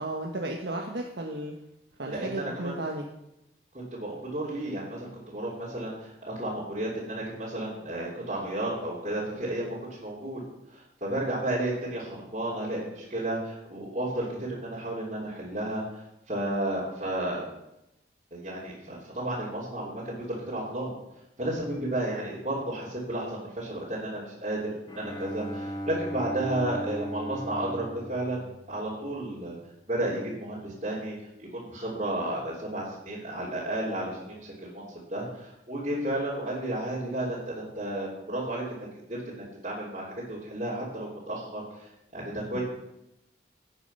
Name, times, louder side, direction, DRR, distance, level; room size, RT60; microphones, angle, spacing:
voice 1, 0.0-1.5 2.0-3.0 42.5-42.6, right 1 dB, 80° right, 0 dB, 1.4 m, -34 dB
voice 2, 2.1-2.7 3.9-10.4 10.7-17.5 18.3-20.9 21.4-24.6 24.9-28.4 28.7-29.6 29.9-34.9 35.1-42.6, right 1 dB, 40° right, -8 dB, 3.6 m, -32 dB
Bowed string instrument, 24.9-29.2, equal, 25° left, 1.4 m, -37 dB
16.5 x 8.8 x 5.7 m, 0.87 s
head